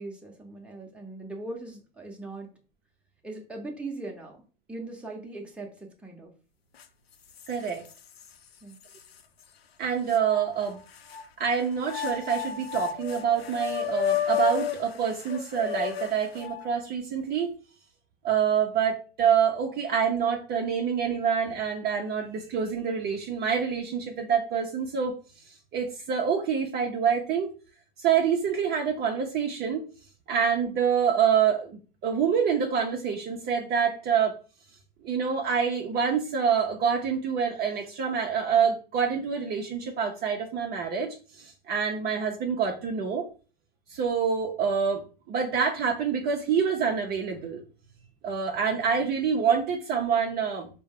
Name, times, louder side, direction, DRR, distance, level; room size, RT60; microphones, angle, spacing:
voice 1, 0.0-2.6 3.2-4.4 4.7-6.3 8.6-8.8, right 2 dB, 5° right, 0 dB, 1.0 m, -40 dB
sound 1, 6.8-6.9 7.4-8.3 8.9-9.0 10.1-11.3 11.8-16.7, left 10 dB, 90° left, 0.5 m, -32 dB
voice 2, 7.5-7.8 9.8-10.8 11.4-17.5 18.2-25.1 25.4-27.5 28.0-29.8 30.3-34.3 35.0-43.2 43.9-45.0 45.3-47.6 48.2-50.7, right 7 dB, 35° right, 2 dB, 0.7 m, -26 dB
4.4 x 2.2 x 3.6 m, 0.36 s
hypercardioid pair, 95°, 29 cm